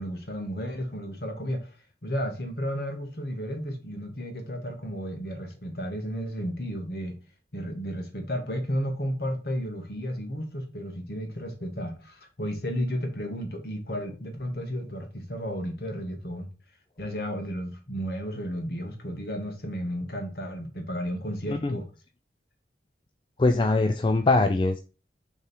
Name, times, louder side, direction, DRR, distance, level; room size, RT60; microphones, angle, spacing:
voice 1, 0.0-1.8 2.0-7.2 7.5-16.5 17.0-21.9, equal, 60° left, 1.5 m, -33 dB
voice 2, 21.5-21.8 23.4-24.8, left 2 dB, 25° left, 0.3 m, -22 dB
6.7 x 3.6 x 4.5 m
head